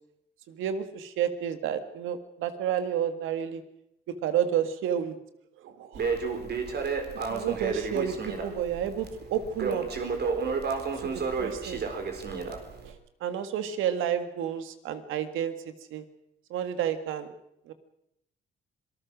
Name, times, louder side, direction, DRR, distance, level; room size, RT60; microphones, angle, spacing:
voice 1, 0.5-3.6 4.2-5.2 5.6-6.0 7.3-9.8 11.0-11.8 12.8-13.0 13.2-16.0 16.5-17.3 17.7-17.8, right 9 dB, 90° right, 10 dB, 1.9 m, -30 dB
Crackle, 5.9-12.9, right 5 dB, 55° right, 4.0 m, -31 dB
26.0 x 19.5 x 6.3 m, 0.79 s
cardioid pair, 90°, 20 cm